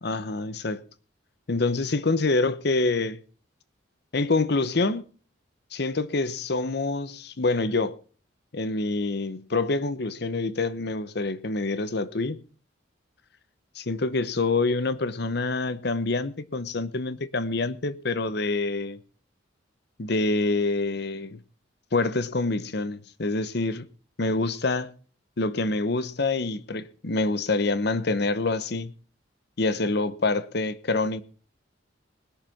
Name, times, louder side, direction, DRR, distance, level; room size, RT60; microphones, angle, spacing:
voice 1, 0.0-0.8 1.5-3.2 4.1-5.0 5.7-8.0 8.5-12.4 13.8-19.0 20.0-21.4 21.9-23.9 24.2-24.9 25.4-28.9 29.6-31.2, left 3 dB, 55° left, 0.9 m, -26 dB
20.0 x 6.7 x 5.9 m
head